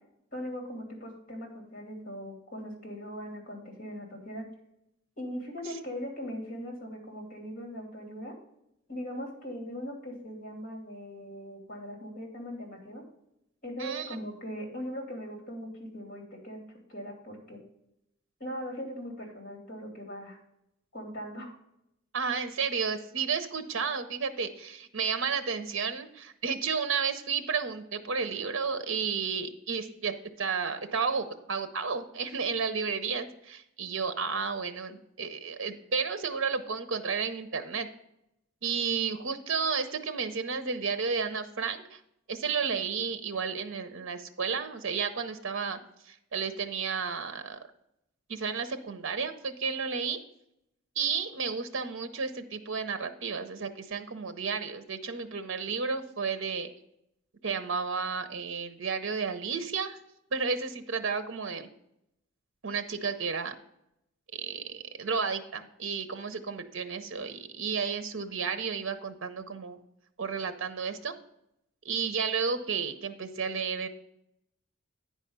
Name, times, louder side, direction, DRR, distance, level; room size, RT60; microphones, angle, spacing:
voice 1, 0.3-4.5 5.2-8.3 8.9-13.0 13.6-16.6 16.9-17.6 18.4-20.4 20.9-21.5, equal, 45° left, 1 dB, 2.8 m, -40 dB
voice 2, 13.8-14.2 22.1-37.9 38.6-42.0 42.3-45.8 46.0-47.6 48.3-50.2 51.0-56.7 57.4-60.0 60.3-61.7 62.6-63.5 64.3-69.8 70.2-71.1 71.8-73.9, right 5 dB, 65° right, 9 dB, 0.7 m, -32 dB
9.5 x 4.8 x 5.5 m, 0.81 s
head